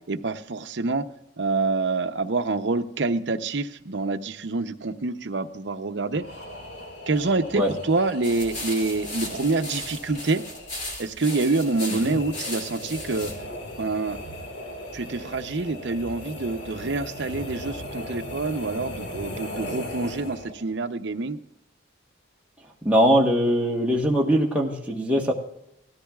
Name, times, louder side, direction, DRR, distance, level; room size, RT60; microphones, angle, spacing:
voice 1, 0.1-1.0 1.4-6.3 7.1-10.4 11.0-13.3 13.8-14.2 14.9-21.4, right 3 dB, 65° right, 9 dB, 0.7 m, -26 dB
sound 1, 6.1-20.7, equal, 65° left, 1.9 m, -38 dB
sound 2, 8.2-13.4, left 2 dB, 40° left, 2.6 m, -36 dB
voice 2, 22.8-25.3, equal, 5° right, -3 dB, 1.2 m, -21 dB
18.0 x 13.5 x 2.4 m, 0.81 s
head